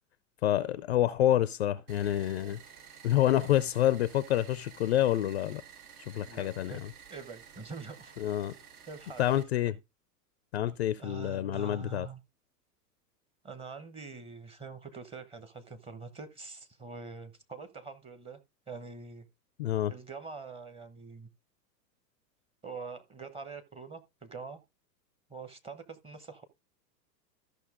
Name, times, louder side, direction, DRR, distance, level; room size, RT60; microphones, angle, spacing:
voice 1, 0.4-2.6 3.0-5.6 6.1-6.9 8.2-8.5 9.2-9.7 10.5-12.1 19.6-19.9, left 12 dB, 40° left, 0.5 m, -28 dB
sound 1, 1.9-9.4, right 7 dB, 65° right, 1.9 m, -53 dB
voice 2, 6.2-6.8 7.1-8.1 8.9-9.3 11.0-12.2 13.4-18.4 18.7-19.2 19.9-21.3 22.6-24.6 25.3-26.4, right 4 dB, 10° right, 0.9 m, -44 dB
13.5 x 5.8 x 3.6 m
figure-of-eight pair, 105°, 50 cm